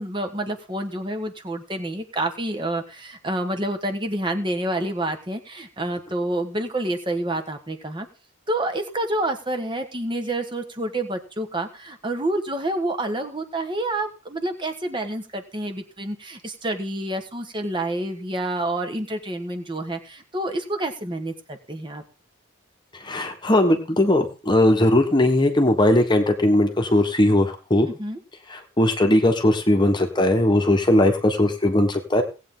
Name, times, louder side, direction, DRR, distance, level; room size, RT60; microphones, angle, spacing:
voice 1, 0.0-8.1 8.5-22.0 28.0-28.2, right 1 dB, 20° right, 5 dB, 1.4 m, -28 dB
voice 2, 23.0-27.9 28.5-32.2, left 1 dB, 20° left, 5 dB, 1.3 m, -19 dB
18.0 x 8.5 x 3.8 m, 0.34 s
head